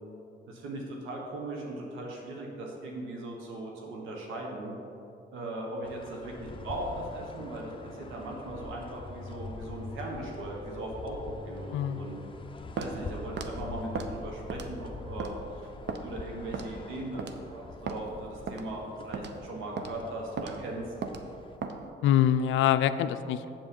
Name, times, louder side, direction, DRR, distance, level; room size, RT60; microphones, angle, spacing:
voice 1, 0.5-4.7 5.3-12.2 12.8-15.6 16.0-20.9, right 1 dB, 85° right, -1 dB, 1.3 m, -38 dB
sound 1, 5.8-21.6, left 3 dB, 25° left, 0.7 m, -44 dB
voice 2, 11.7-12.1 22.0-23.5, left 10 dB, 80° left, 11 dB, 0.4 m, -25 dB
Walk footsteps, 12.8-13.0 13.4-13.5 13.9-14.1 14.5-14.8 15.2-15.3 15.9-16.0 16.5-16.8 17.2-17.4 17.9-18.0 18.5-18.7 19.1-19.4 19.8-19.9 20.4-20.5 21.0-21.2 21.6-21.8, right 5 dB, 60° right, 0.7 m, -35 dB
7.5 x 7.3 x 5.3 m, 2.8 s
cardioid pair, 90°, 20 cm